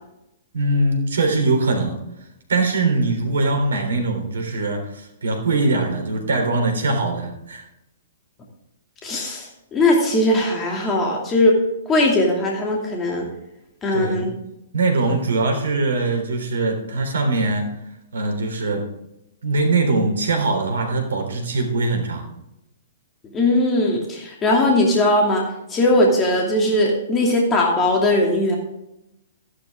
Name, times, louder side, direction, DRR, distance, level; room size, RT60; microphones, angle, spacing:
voice 1, 0.5-2.0 2.5-7.6 13.9-14.3 14.7-17.7 18.1-18.9 19.4-22.3, right 2 dB, 70° right, 3 dB, 3.5 m, -22 dB
voice 2, 9.0-11.6 11.9-13.3 13.8-14.3 23.3-25.4 25.7-28.6, left 1 dB, 20° left, -1 dB, 2.7 m, -19 dB
13.5 x 11.5 x 3.6 m, 0.85 s
figure-of-eight pair, 115°, 0 cm